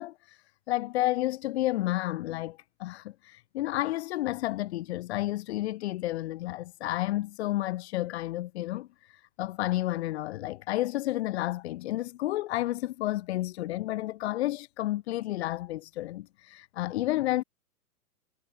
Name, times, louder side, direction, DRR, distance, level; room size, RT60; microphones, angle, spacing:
voice 1, 0.0-17.4, left 16 dB, 40° left, 3.3 m, -31 dB
hypercardioid pair, 145°, 47 cm